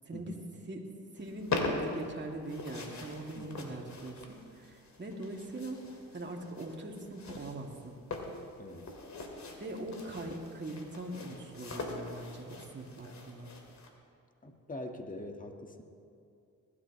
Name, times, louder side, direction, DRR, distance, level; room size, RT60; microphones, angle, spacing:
voice 1, 0.0-0.4 0.7-0.8 1.1-5.9 6.1-8.0 9.6-13.5, right 2 dB, 30° right, 0 dB, 2.5 m, -42 dB
sound 1, 1.2-13.9, left 3 dB, 55° left, 2.5 m, -42 dB
voice 2, 3.3-3.8 8.6-8.9 14.4-15.8, left 2 dB, 25° left, 3 dB, 1.6 m, -44 dB
21.5 x 12.5 x 3.2 m, 2.6 s
supercardioid pair, 65°, 34 cm